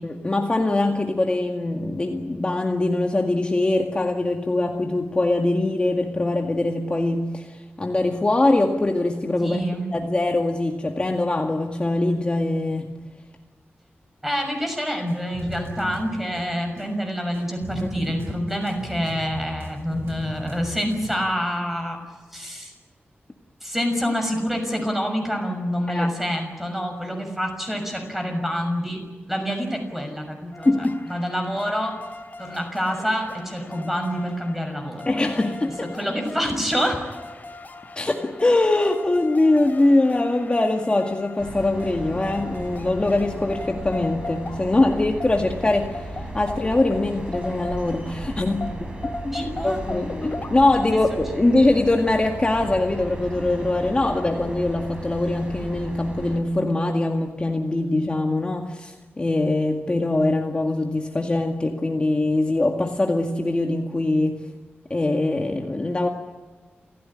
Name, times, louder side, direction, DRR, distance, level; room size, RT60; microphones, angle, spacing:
voice 1, 0.0-9.6 9.9-12.9 18.0-18.1 25.9-26.1 30.7-31.0 35.1-35.9 38.0-46.1 46.3-48.9 49.2-49.4 49.6-64.4 64.9-66.1, left 2 dB, 25° left, 2 dB, 2.0 m, -22 dB
voice 2, 9.4-9.8 14.2-22.0 22.3-22.7 23.6-29.0 29.3-30.7 31.1-32.0 32.4-35.0 35.9-37.0 49.3-49.8, equal, 5° right, 4 dB, 6.3 m, -27 dB
sound 1, 15.1-21.1, right 2 dB, 75° right, 7.6 m, -38 dB
Titan flyby synth loop, 30.5-48.2 48.6-50.5, left 2 dB, 45° left, 3.1 m, -39 dB
sound 2, 41.4-56.4, right 1 dB, 25° right, 5.3 m, -35 dB
28.5 x 15.5 x 10.0 m, 1.3 s
wide cardioid pair, 105°, 4 cm